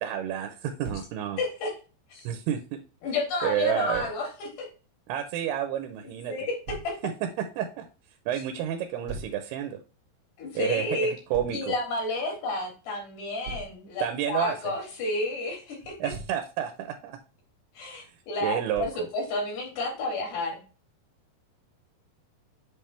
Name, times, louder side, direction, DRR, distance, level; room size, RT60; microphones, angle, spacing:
voice 1, 0.0-1.4 2.2-2.8 3.4-4.1 5.1-6.3 7.6-7.9 8.3-9.8 10.6-11.8 14.0-14.7 16.0-17.2 18.0-18.1 18.4-19.1, right 10 dB, 80° right, 7 dB, 2.6 m, -30 dB
Thump thud, 0.8-1.1 3.9-4.1 6.7-6.9 9.1-9.4 11.3-11.6 13.4-13.8 15.8-16.4 18.7-19.1, right 4 dB, 60° right, 1.8 m, -40 dB
voice 2, 1.4-1.7 2.1-2.3 3.0-4.7 6.0-6.5 10.4-11.1 11.5-15.9 17.8-20.6, left 2 dB, 75° left, 0 dB, 4.6 m, -31 dB
7.9 x 3.5 x 4.4 m, 0.34 s
omnidirectional pair, 4.7 m